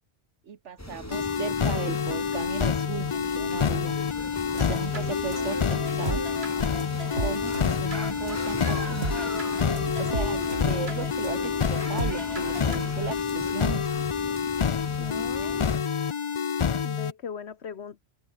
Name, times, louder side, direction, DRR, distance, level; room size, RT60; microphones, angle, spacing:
voice 1, 0.5-4.0 4.5-6.2 7.2-9.3 10.0-11.4 11.7-13.8, right 7 dB, 85° right, 1.6 m, -36 dB
sound 1, 0.8-15.8, equal, 15° left, 4.6 m, -39 dB
sound 2, 1.1-17.1, left 7 dB, 45° left, 0.4 m, -28 dB
sound 3, 4.5-12.9, right 2 dB, 60° right, 4.6 m, -36 dB
voice 2, 15.0-15.6 16.8-18.0, left 7 dB, 70° left, 1.5 m, -38 dB
omnidirectional pair, 1.2 m